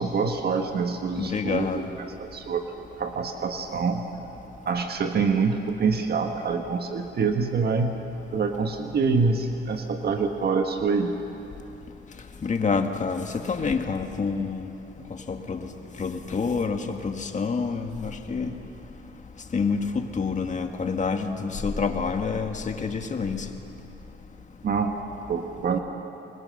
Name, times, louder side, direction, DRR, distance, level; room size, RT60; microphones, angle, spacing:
voice 1, 0.0-2.6 3.0-4.0 4.7-8.0 8.3-11.2 24.6-25.0 25.3-25.8, right 5 dB, 55° right, 4 dB, 1.6 m, -26 dB
voice 2, 1.2-1.8 12.4-14.6 15.3-15.6 16.0-18.5 19.5-23.5, left 5 dB, 40° left, 5 dB, 1.9 m, -27 dB
25.5 x 21.5 x 6.7 m, 2.9 s
cardioid pair, 90°, 20 cm